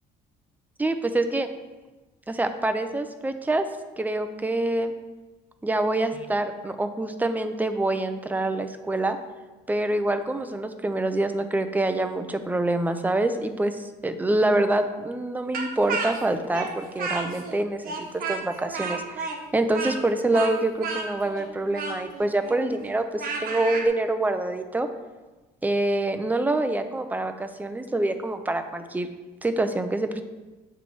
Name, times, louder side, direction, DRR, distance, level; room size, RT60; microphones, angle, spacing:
voice 1, 0.8-1.5 2.3-3.6 4.0-4.9 5.6-9.2 9.7-24.9 25.6-29.1 29.4-30.2, right 2 dB, 10° right, 8 dB, 0.5 m, -26 dB
Speech, 15.5-17.6 17.8-23.9, right 4 dB, 60° right, 1.1 m, -32 dB
7.5 x 3.3 x 5.3 m, 1.2 s
cardioid pair, 110°, 17 cm